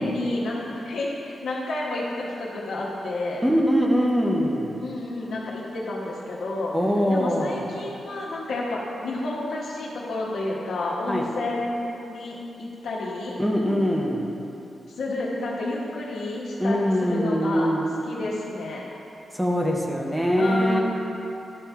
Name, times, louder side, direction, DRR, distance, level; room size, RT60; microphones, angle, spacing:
voice 1, 0.0-3.4 4.8-6.7 7.1-11.8 12.1-13.4 14.9-17.7 18.0-18.8 20.3-20.8, left 2 dB, 85° left, -5 dB, 1.1 m, -30 dB
voice 2, 3.4-4.7 6.7-7.6 11.1-11.3 13.4-14.3 16.6-17.8 19.3-20.8, equal, 5° right, -1 dB, 0.6 m, -22 dB
12.0 x 4.3 x 3.5 m, 2.8 s
wide cardioid pair, 155°, 0 cm